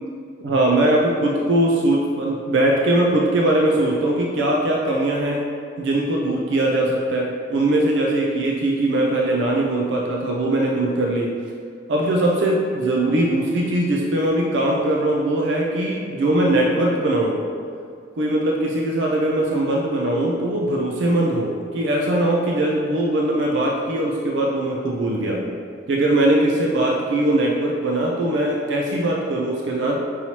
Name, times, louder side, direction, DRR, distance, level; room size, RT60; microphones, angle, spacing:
voice 1, 0.4-5.4 5.8-11.4 11.9-17.4 18.2-25.4 25.9-30.0, right 1 dB, 65° right, -1 dB, 0.4 m, -21 dB
5.4 x 3.0 x 2.8 m, 2.2 s
head